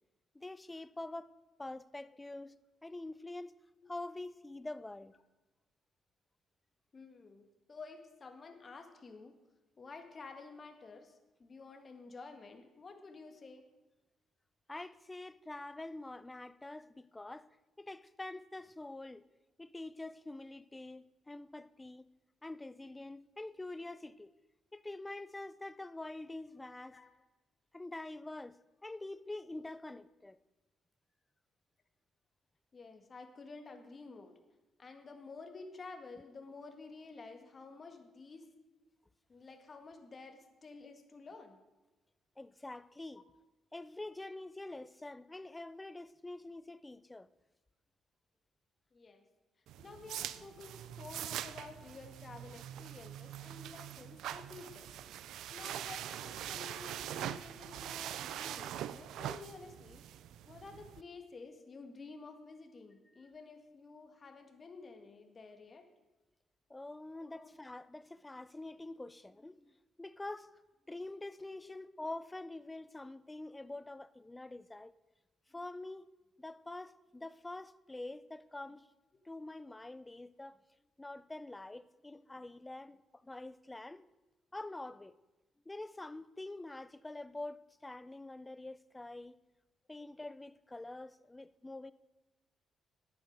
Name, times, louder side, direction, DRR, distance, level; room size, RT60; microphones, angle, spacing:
voice 1, 0.3-1.3 1.6-3.5 3.9-5.2 14.7-17.5 17.8-19.2 19.6-22.1 22.4-24.3 24.7-27.0 27.7-30.4 42.4-43.2 43.7-47.3 63.1-63.2 66.7-70.5 70.9-74.9 75.5-76.1 76.4-78.9 79.2-80.6 81.0-84.0 84.5-85.1 85.7-89.4 89.9-91.9, left 2 dB, 15° left, 0.5 m, -46 dB
voice 2, 6.9-9.4 9.8-13.7 26.9-27.1 32.7-34.3 34.8-38.5 39.3-41.6 48.9-49.3 49.8-55.0 55.5-60.0 60.4-65.9 67.2-67.5 71.6-71.9 82.1-82.2, left 4 dB, 35° left, 1.7 m, -51 dB
sound 1, 49.7-61.0, right 11 dB, 80° right, 0.4 m, -43 dB
11.5 x 8.7 x 6.5 m
cardioid pair, 90°, 0 cm